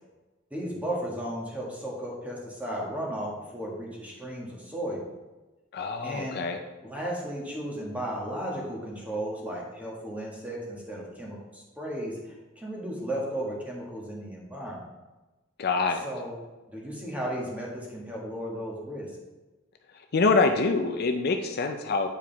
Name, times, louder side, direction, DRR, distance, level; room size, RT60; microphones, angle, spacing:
voice 1, 0.5-5.1 6.0-6.4 6.8-14.9 16.0-16.4 16.7-19.1, right 1 dB, 5° right, -3 dB, 1.6 m, -35 dB
voice 2, 5.7-6.6 15.6-16.1 20.1-22.1, left 4 dB, 50° left, 5 dB, 0.5 m, -25 dB
8.7 x 4.9 x 3.4 m, 1.1 s
head